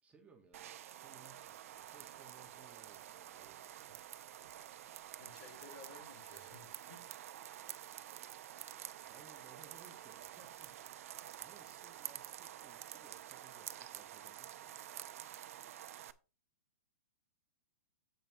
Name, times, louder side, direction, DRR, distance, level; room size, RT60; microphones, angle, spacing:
voice 1, 0.0-0.7 1.0-4.0 9.0-14.7, right 4 dB, 15° right, 1.4 m, -63 dB
sound 1, 0.5-16.1, right 12 dB, 65° right, 0.7 m, -49 dB
voice 2, 5.2-7.1, left 4 dB, 50° left, 4.1 m, -56 dB
9.0 x 7.9 x 2.9 m
hypercardioid pair, 120°, 8 cm